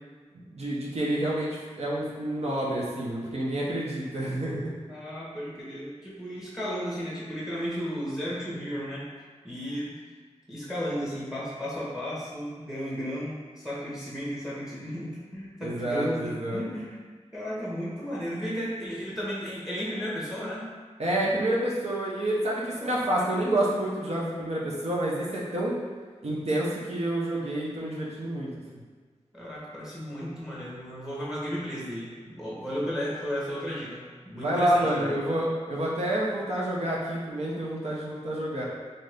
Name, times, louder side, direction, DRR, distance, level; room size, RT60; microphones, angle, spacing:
voice 1, 0.5-4.7 15.6-16.6 21.0-25.7 26.2-28.5 34.3-38.6, right 1 dB, 65° right, -5 dB, 0.6 m, -28 dB
voice 2, 4.9-9.1 9.4-10.0 10.5-17.0 17.3-20.7 22.7-23.1 29.3-35.2, equal, 5° right, -7 dB, 0.8 m, -34 dB
2.7 x 2.5 x 3.3 m, 1.5 s
wide cardioid pair, 55°, 12 cm